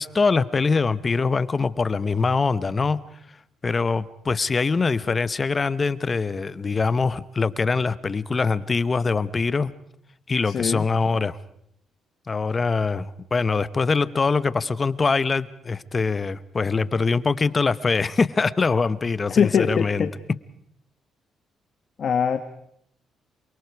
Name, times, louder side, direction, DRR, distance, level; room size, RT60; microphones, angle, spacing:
voice 1, 0.0-3.0 3.6-9.7 10.3-11.4 12.3-20.1, left 4 dB, 30° left, 17 dB, 1.0 m, -23 dB
voice 2, 10.4-10.8 19.3-20.1 22.0-22.4, left 7 dB, 55° left, 9 dB, 1.4 m, -22 dB
27.5 x 24.0 x 4.8 m, 0.72 s
cardioid pair, 90°, 0 cm